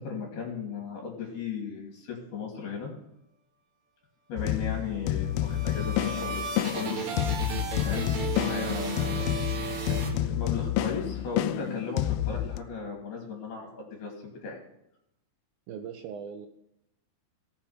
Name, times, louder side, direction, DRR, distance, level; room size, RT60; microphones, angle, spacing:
voice 1, 0.0-2.9 4.3-7.0 7.8-9.4 9.9-14.1 14.4-14.6, left 5 dB, 65° left, -1 dB, 4.7 m, -36 dB
sound 1, 4.4-12.6, left 13 dB, 85° left, 2.1 m, -29 dB
sound 2, 5.2-10.8, right 4 dB, 55° right, 2.4 m, -35 dB
voice 2, 15.7-16.5, right 7 dB, 75° right, 5 dB, 2.3 m, -39 dB
17.5 x 7.3 x 4.4 m, 0.82 s
omnidirectional pair, 4.8 m